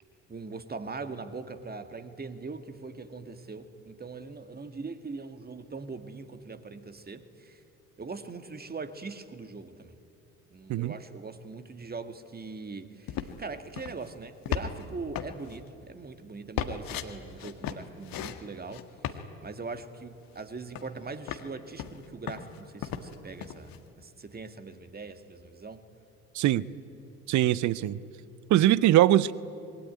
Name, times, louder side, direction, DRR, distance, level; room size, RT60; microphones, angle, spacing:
voice 1, 0.3-7.6 8.0-10.0 10.5-25.8, right 4 dB, 20° right, 9 dB, 1.9 m, -41 dB
sound 1, 13.1-13.4 13.8-14.1 14.5-14.8 15.2-15.6 16.6-17.1 17.4-18.4 18.7-19.2 20.4-20.5 20.8-21.4 21.8-23.2 23.4-23.8, left 10 dB, 50° left, 1.8 m, -35 dB
voice 2, 26.3-26.7 27.3-28.0 28.5-29.3, right 14 dB, 40° right, 20 dB, 0.8 m, -22 dB
25.5 x 22.0 x 9.6 m, 2.8 s
figure-of-eight pair, 55°, 43 cm